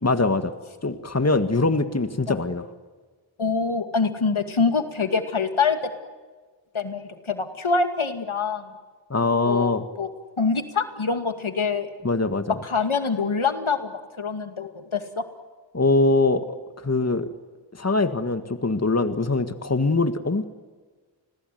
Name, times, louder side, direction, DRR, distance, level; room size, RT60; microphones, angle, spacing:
voice 1, 0.0-0.5 0.8-2.7 9.1-9.9 12.0-12.6 15.7-16.5 16.8-17.3 17.7-20.4, left 3 dB, 30° left, 9 dB, 1.8 m, -22 dB
voice 2, 3.4-5.9 6.7-8.7 9.5-9.7 10.0-10.1 10.4-11.9 12.6-15.2, left 4 dB, 80° left, 7 dB, 2.4 m, -25 dB
30.0 x 21.0 x 9.4 m, 1.4 s
wide cardioid pair, 45°, 48 cm